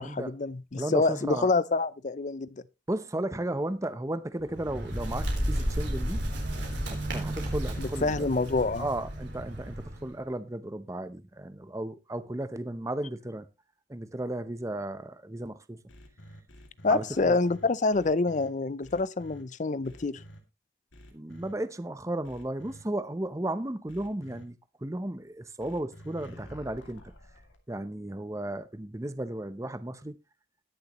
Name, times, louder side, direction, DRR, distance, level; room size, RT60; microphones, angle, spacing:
voice 1, 0.0-2.6 7.8-8.9 16.8-20.2, left 3 dB, 40° left, 0.5 m, -27 dB
voice 2, 0.8-1.5 2.9-6.2 6.9-8.3 8.8-13.5 13.9-15.8 16.9-17.4 21.1-27.0 27.7-30.2, right 1 dB, 15° right, 0.7 m, -34 dB
Bird, 4.4-10.1, equal, 70° right, 3.8 m, -32 dB
sound 1, 15.9-18.5 18.8-19.4 19.8-20.4 20.9-21.5 22.2-22.8 23.9-24.4 25.6-27.6, equal, 90° left, 2.5 m, -49 dB
20.0 x 6.8 x 3.0 m
head